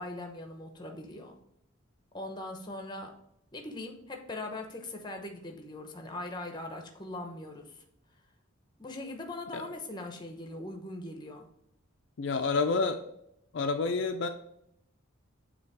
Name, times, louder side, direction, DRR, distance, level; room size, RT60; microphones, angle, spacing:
voice 1, 0.0-1.4 2.1-3.1 3.5-7.8 8.8-11.5, left 2 dB, 20° left, 4 dB, 0.8 m, -40 dB
voice 2, 12.2-13.0 13.5-14.3, left 4 dB, 60° left, 5 dB, 0.4 m, -28 dB
7.0 x 2.9 x 4.6 m, 0.77 s
head